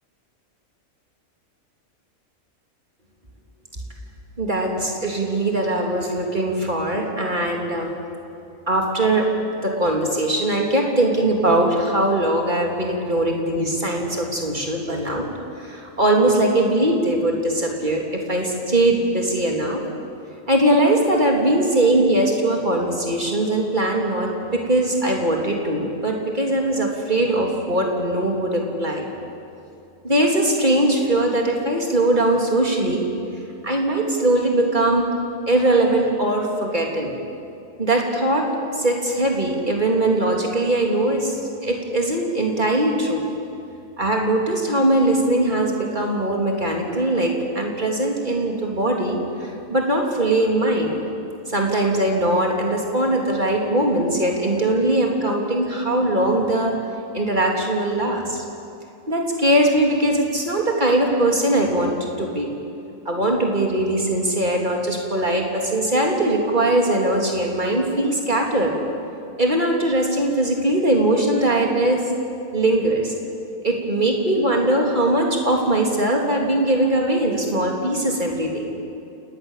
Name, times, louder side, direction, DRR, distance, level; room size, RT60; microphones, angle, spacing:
voice 1, 4.4-7.9 8.7-9.3 9.6-15.3 15.6-19.8 20.5-29.1 30.0-33.1 33.6-35.1 35.5-37.1 37.8-38.5 38.7-43.3 44.0-51.0 51.5-56.8 57.1-58.4 59.1-62.5 63.1-68.7 69.4-72.1 72.5-73.1 73.6-78.7, right 1 dB, 35° right, 0 dB, 3.4 m, -21 dB
29.0 x 19.0 x 7.5 m, 2.6 s
omnidirectional pair, 1.5 m